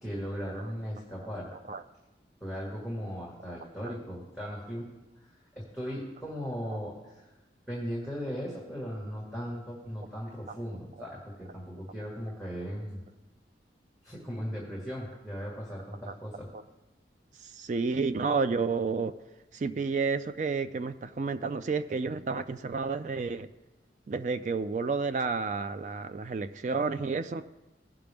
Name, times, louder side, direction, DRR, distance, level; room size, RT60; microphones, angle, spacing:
voice 1, 0.0-1.5 2.4-4.9 5.2-5.3 5.7-7.3 7.7-13.0 14.0-16.5, equal, ahead, -6 dB, 1.7 m, -37 dB
voice 2, 17.4-19.2 19.5-23.5 24.1-27.5, right 4 dB, 40° right, 11 dB, 0.3 m, -31 dB
17.0 x 5.8 x 3.5 m, 1.1 s
head